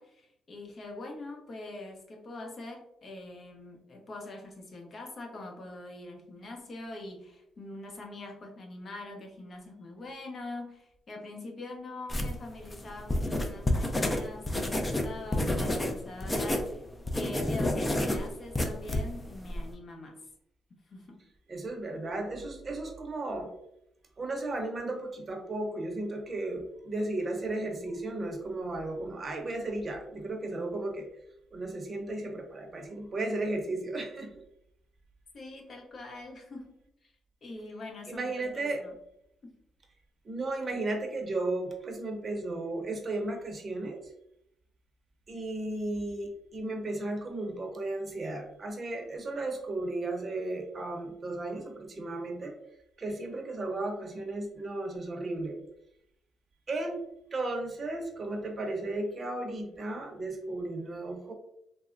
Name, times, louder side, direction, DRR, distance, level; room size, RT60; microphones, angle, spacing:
voice 1, 0.0-16.8 17.1-20.2 20.9-21.3 35.3-36.7 37.0-37.1 37.4-38.9 39.4-39.6, left 2 dB, 45° left, 2 dB, 0.7 m, -43 dB
sound 1, 12.1-16.7 17.0-19.7, left 1 dB, 20° left, 0.4 m, -29 dB
voice 2, 21.5-23.5 24.2-31.1 31.5-34.3 38.1-38.8 40.2-44.0 45.3-52.5 53.0-55.6 56.7-57.0 57.3-61.3, right 2 dB, 35° right, 3 dB, 0.7 m, -34 dB
3.4 x 2.0 x 2.5 m, 0.78 s
cardioid pair, 90°, 0 cm